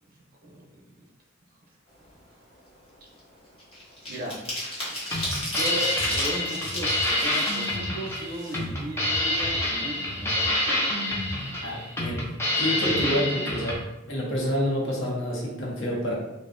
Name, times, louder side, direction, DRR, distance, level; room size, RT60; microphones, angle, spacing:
voice 1, 0.4-0.8 4.1-4.4 5.4-10.8, equal, 45° right, -2 dB, 0.5 m, -36 dB
sound 1, 2.0-2.2 2.6-9.0 9.4-9.5 9.8-10.8 11.1-11.2 11.5-11.8, left 1 dB, 25° left, 0.8 m, -34 dB
sound 2, 4.9-13.8, left 1 dB, 10° left, 0.4 m, -27 dB
voice 2, 11.6-12.3 12.6-13.8 14.1-16.1, equal, 65° left, -3 dB, 0.7 m, -28 dB
2.5 x 2.0 x 2.4 m, 0.98 s
head